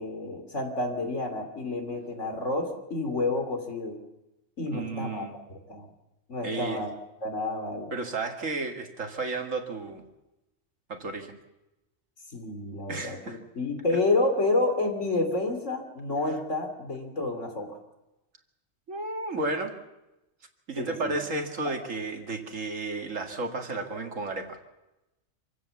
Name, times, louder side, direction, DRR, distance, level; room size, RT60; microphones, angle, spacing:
voice 1, 0.0-4.0 4.6-5.9 6.3-6.9 7.2-7.9 12.3-17.8 20.8-21.2 21.6-21.7, left 2 dB, 70° left, 5 dB, 3.5 m, -29 dB
voice 2, 4.7-5.3 6.4-6.8 7.9-10.0 10.9-11.4 12.9-13.4 18.9-19.7 20.7-24.6, right 3 dB, 85° right, 4 dB, 2.5 m, -33 dB
26.5 x 15.5 x 7.1 m, 0.97 s
omnidirectional pair, 1.3 m